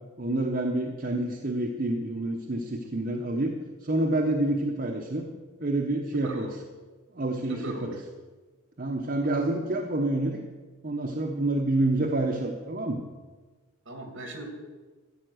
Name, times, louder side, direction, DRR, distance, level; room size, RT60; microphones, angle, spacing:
voice 1, 0.2-3.6 3.8-5.3 5.6-6.5 7.1-7.9 8.8-10.4 10.8-13.0, right 2 dB, 45° right, 1 dB, 0.9 m, -28 dB
voice 2, 6.1-6.5 7.4-7.9 13.8-14.5, right 1 dB, 60° right, 3 dB, 2.6 m, -39 dB
14.0 x 7.7 x 6.4 m, 1.3 s
head